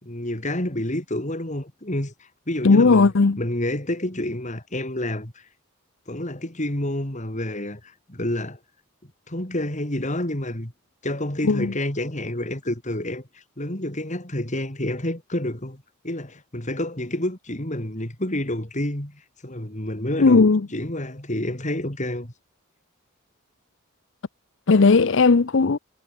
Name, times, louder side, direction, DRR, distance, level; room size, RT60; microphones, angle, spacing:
voice 1, 0.0-2.1 2.5-3.1 3.4-5.4 6.1-8.6 9.3-10.7 11.0-22.3, left 1 dB, 35° left, 3.7 m, -29 dB
voice 2, 2.6-3.4 11.4-11.7 20.2-20.6 24.7-25.8, left 4 dB, 60° left, 0.6 m, -16 dB
head